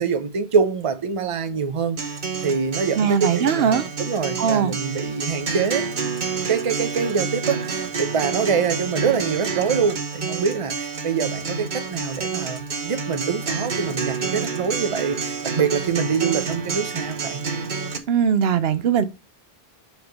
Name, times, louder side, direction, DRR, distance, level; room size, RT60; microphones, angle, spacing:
voice 1, 0.0-2.0 2.4-5.9 6.5-17.4, right 6 dB, 35° right, 0.7 m, -25 dB
Acoustic guitar, 2.0-18.0, right 5 dB, 50° right, 1.1 m, -29 dB
voice 2, 3.0-3.8 4.4-4.8 18.1-19.1, right 7 dB, 75° right, 0.9 m, -20 dB
4.9 x 4.7 x 5.2 m
omnidirectional pair, 1.0 m